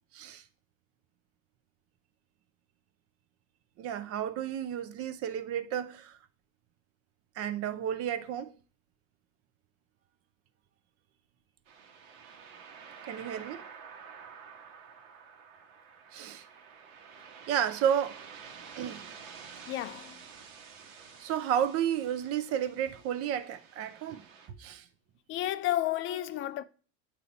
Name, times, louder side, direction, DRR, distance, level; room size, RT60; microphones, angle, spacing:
voice 1, 3.8-6.2 7.4-8.5 13.1-13.6 16.1-16.4 17.5-18.2 18.7-19.0 21.2-24.3 24.6-24.8, right 9 dB, 40° right, 0.6 m, -32 dB
sound 1, 11.7-24.5, right 6 dB, 80° right, 1.3 m, -50 dB
voice 2, 19.7-20.3 25.3-26.6, left 14 dB, 35° left, 0.4 m, -32 dB
8.4 x 2.8 x 4.0 m
supercardioid pair, 130°, 38 cm